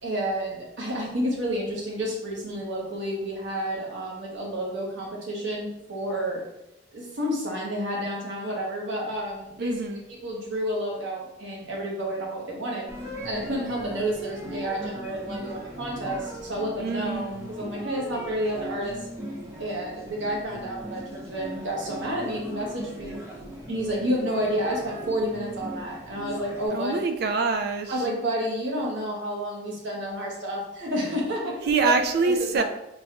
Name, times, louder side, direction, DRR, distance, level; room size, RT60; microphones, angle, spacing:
voice 1, 0.0-6.4 6.9-9.7 10.2-12.9 13.2-19.0 19.6-23.2 23.7-27.0 27.9-32.6, equal, 90° right, -2 dB, 1.1 m, -30 dB
voice 2, 9.6-10.0 16.8-17.5 26.7-27.9 31.6-32.6, right 4 dB, 60° right, 7 dB, 0.3 m, -25 dB
sound 1, 12.9-26.7, equal, 15° right, 0.8 m, -38 dB
4.4 x 2.2 x 2.8 m, 0.85 s
head